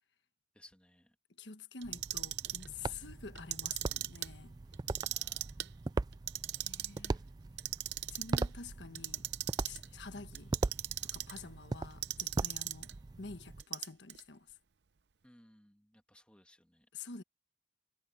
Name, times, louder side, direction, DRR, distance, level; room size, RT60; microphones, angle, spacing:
voice 1, 0.5-1.2 5.0-5.6 7.0-7.3 15.2-16.9, left 1 dB, 5° left, 2.4 m, -62 dB
voice 2, 1.4-4.5 6.6-7.2 8.1-9.3 9.6-10.5 11.0-12.9 13.2-14.6 16.9-17.2, left 4 dB, 85° left, 1.3 m, -48 dB
sound 1, 1.8-13.6, right 3 dB, 25° right, 0.3 m, -40 dB
Clock, 1.8-2.7 3.4-4.3 4.7-5.7 6.1-7.1 7.6-8.5 8.9-9.9 10.3-11.4 12.0-12.9 13.6-14.2, right 14 dB, 75° right, 0.7 m, -38 dB
head